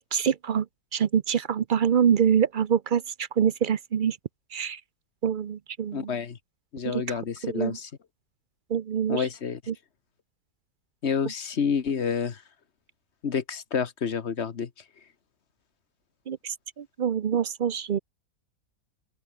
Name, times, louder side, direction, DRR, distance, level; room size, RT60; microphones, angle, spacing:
voice 1, 0.1-0.7 0.9-4.2 4.5-4.8 5.2-6.1 6.9-7.0 7.4-7.8 8.7-9.3 9.7-9.8 16.3-18.0, right 8 dB, 50° right, 0.6 m, -25 dB
voice 2, 5.9-6.4 6.7-7.9 9.1-9.6 11.0-12.4 13.2-14.7, left 6 dB, 50° left, 1.4 m, -29 dB
open air
omnidirectional pair, 1.6 m